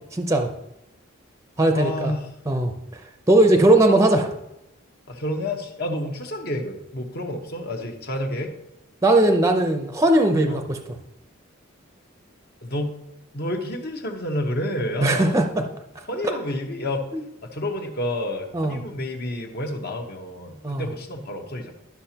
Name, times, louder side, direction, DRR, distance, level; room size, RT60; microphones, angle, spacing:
voice 1, 0.1-0.5 1.6-2.1 2.5-2.7 3.3-4.3 9.0-10.8 15.0-15.6 17.1-17.2 18.5-18.8 20.6-20.9, right 1 dB, 15° right, 5 dB, 0.6 m, -19 dB
voice 2, 1.7-2.3 3.5-3.6 5.1-8.5 10.5-10.6 12.6-12.9 13.3-15.4 16.1-17.0 17.4-21.7, left 1 dB, 50° left, 4 dB, 1.1 m, -29 dB
12.5 x 5.9 x 2.9 m, 0.86 s
head